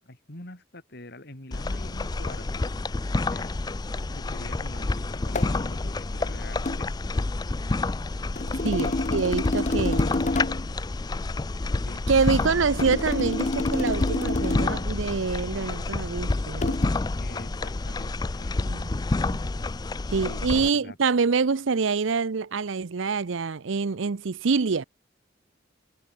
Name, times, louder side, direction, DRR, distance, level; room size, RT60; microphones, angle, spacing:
voice 1, 0.0-2.7 3.3-3.5 3.9-6.9 8.6-9.5 11.8-12.5 17.2-18.6 20.2-21.0, left 1 dB, 55° left, 3.9 m, -44 dB
sound 1, 1.5-20.7, left 2 dB, 20° left, 0.4 m, -29 dB
sound 2, 5.3-5.6 6.7-6.9 8.4-10.7 12.8-14.9 16.6-16.9, left 2 dB, 35° left, 0.8 m, -28 dB
voice 2, 8.6-10.1 12.1-16.8 18.6-19.1 20.1-24.8, right 5 dB, 75° right, 0.6 m, -26 dB
head